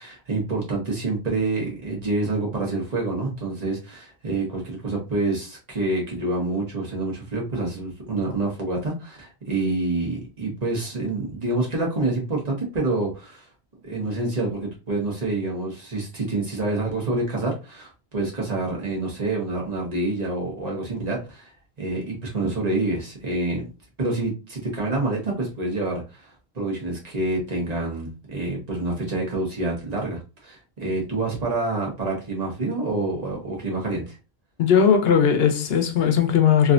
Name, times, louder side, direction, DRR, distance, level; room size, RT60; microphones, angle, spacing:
voice 1, 0.0-13.4 13.8-21.5 21.8-23.6 24.0-34.2, right 2 dB, 40° right, 1.3 m, -27 dB
voice 2, 34.6-36.7, left 7 dB, 70° left, 0.8 m, -18 dB
3.1 x 2.7 x 2.5 m
omnidirectional pair, 1.1 m